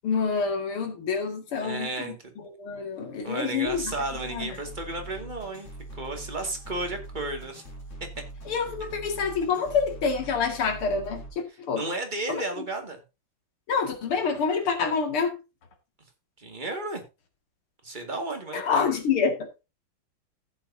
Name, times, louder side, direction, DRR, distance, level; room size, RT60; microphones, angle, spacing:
voice 1, 0.0-2.2 2.6-3.8 4.3-4.5 8.5-11.2 11.7-11.8 12.3-12.4 13.7-15.4 18.5-19.5, left 5 dB, 80° left, 3.0 m, -27 dB
voice 2, 1.5-2.3 3.2-7.6 8.0-8.1 11.5-13.0 16.4-17.0 17.8-18.9, right 2 dB, 20° right, 2.1 m, -33 dB
sound 1, 3.7-11.3, right 2 dB, 35° left, 4.1 m, -42 dB
15.0 x 7.9 x 2.7 m
omnidirectional pair, 2.3 m